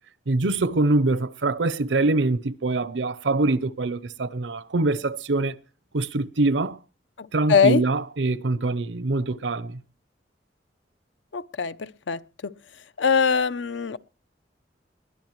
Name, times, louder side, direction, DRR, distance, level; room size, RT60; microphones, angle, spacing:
voice 1, 0.3-5.5 5.9-6.8 7.3-9.8, right 2 dB, 85° right, 0.7 m, -24 dB
voice 2, 7.2-7.8 11.3-12.2 13.0-14.0, left 5 dB, 85° left, 0.6 m, -22 dB
21.0 x 12.0 x 3.1 m
head